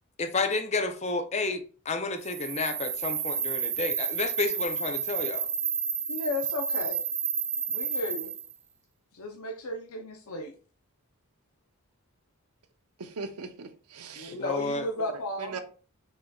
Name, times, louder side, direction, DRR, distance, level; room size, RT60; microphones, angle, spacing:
voice 1, 0.2-5.5 14.3-14.9, left 3 dB, 30° left, 0.5 m, -31 dB
sound 1, 2.2-8.5, right 7 dB, 25° right, 0.7 m, -31 dB
voice 2, 6.1-7.0 7.7-8.3 9.1-10.5 14.2-15.6, left 2 dB, 75° left, 0.7 m, -34 dB
voice 3, 13.0-14.4 15.0-15.1 15.4-15.6, right 4 dB, 90° right, 0.7 m, -39 dB
5.4 x 4.2 x 2.3 m
head